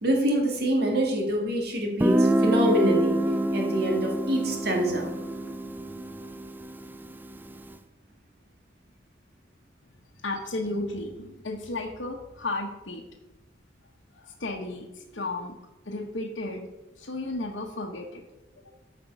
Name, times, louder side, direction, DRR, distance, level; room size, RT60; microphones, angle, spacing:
voice 1, 0.0-3.2 3.5-5.6 5.9-6.0, right 1 dB, 55° right, 1 dB, 2.2 m, -26 dB
Guitar, 2.0-7.6, right 1 dB, 10° right, 0.4 m, -26 dB
voice 2, 10.1-13.0 14.1-15.6 15.8-16.7 17.0-18.2, left 2 dB, 75° left, -2 dB, 1.1 m, -34 dB
13.5 x 5.3 x 5.5 m, 1.1 s
head